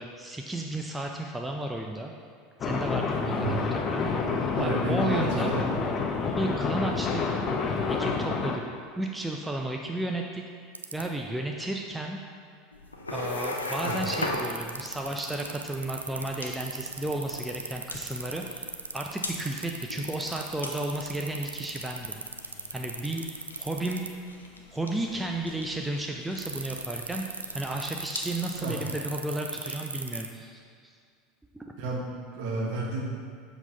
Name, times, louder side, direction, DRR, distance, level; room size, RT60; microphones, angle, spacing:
voice 1, 0.0-2.1 2.6-4.1 4.6-5.5 6.3-7.4 7.9-8.6 9.0-12.2 13.1-22.2 22.7-23.2 23.6-24.1 24.7-27.2 27.5-30.9 31.5-31.7, right 1 dB, 10° right, 1 dB, 0.5 m, -33 dB
sound 1, 2.6-8.6, left 4 dB, 35° left, 0.6 m, -28 dB
voice 2, 3.3-3.6 4.1-5.7 13.8-13.9 28.6-28.7 31.8-33.0, right 2 dB, 55° right, -2 dB, 1.3 m, -32 dB
sound 2, 10.7-11.0 13.4-24.1 26.4-30.3, right 4 dB, 85° right, 0.3 m, -36 dB
sound 3, 12.7-29.0, left 2 dB, 85° left, 0.5 m, -40 dB
7.1 x 4.0 x 3.9 m, 2.2 s
figure-of-eight pair, 80°, 0 cm